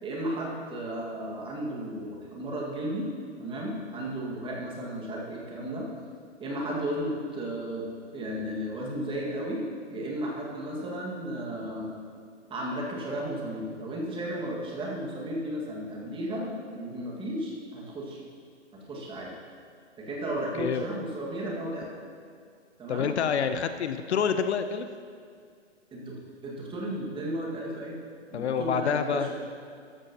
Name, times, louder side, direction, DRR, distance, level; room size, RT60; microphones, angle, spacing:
voice 1, 0.0-3.1 3.4-5.9 6.4-7.9 8.1-11.9 12.5-18.2 18.7-19.3 20.0-21.9 22.8-23.1 25.9-26.2 26.4-28.0 28.3-29.3, right 1 dB, 15° right, -3 dB, 2.0 m, -34 dB
voice 2, 22.9-24.9 28.3-29.3, left 7 dB, 65° left, 9 dB, 0.8 m, -27 dB
14.0 x 12.5 x 3.0 m, 2.2 s
hypercardioid pair, 135°, 36 cm